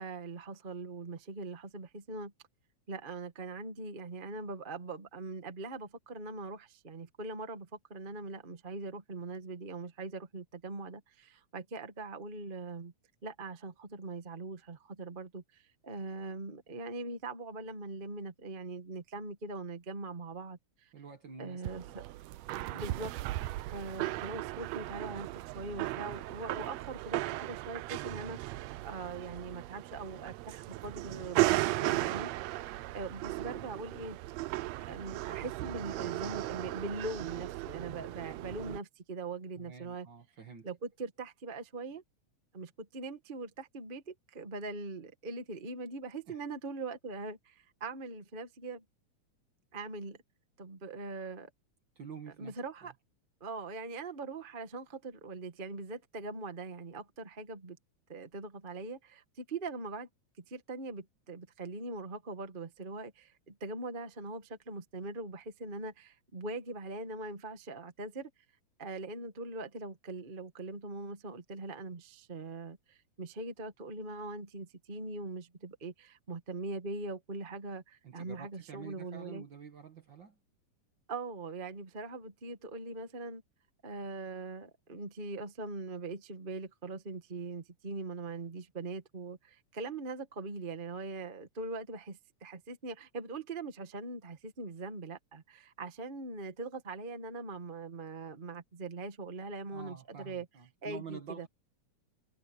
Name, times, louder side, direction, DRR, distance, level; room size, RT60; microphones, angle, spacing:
voice 1, 0.0-2.3 2.9-12.9 13.2-20.9 21.4-22.0 22.7-23.1 23.7-32.3 32.9-34.2 34.9-40.1 40.6-42.0 42.5-48.8 49.7-50.2 50.6-51.5 52.4-52.9 53.4-57.8 58.1-60.1 60.4-68.3 68.8-79.4 81.1-83.4 83.8-100.5 100.8-101.5, right 3 dB, 25° right, 1.3 m, -41 dB
voice 2, 20.9-22.0 39.6-40.7 46.3-46.4 52.0-52.9 78.0-80.4 99.7-101.5, right 6 dB, 45° right, 1.9 m, -48 dB
sound 1, 21.6-38.8, right 18 dB, 75° right, 1.7 m, -36 dB
omnidirectional pair, 3.4 m